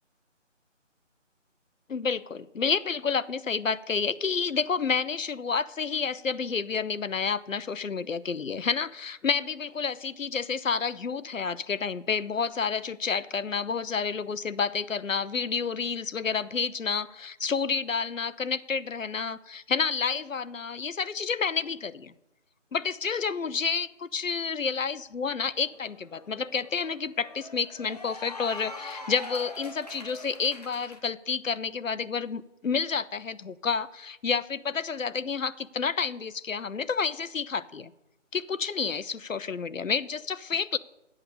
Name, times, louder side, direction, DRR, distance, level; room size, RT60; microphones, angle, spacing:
voice 1, 1.9-22.1 22.7-37.9 38.3-40.8, left 5 dB, 85° left, 16 dB, 0.8 m, -30 dB
Cheering / Applause, 25.1-25.2 25.6-31.0, left 2 dB, 30° left, 1.1 m, -43 dB
10.5 x 8.4 x 6.8 m, 0.92 s
figure-of-eight pair, 170°, 38 cm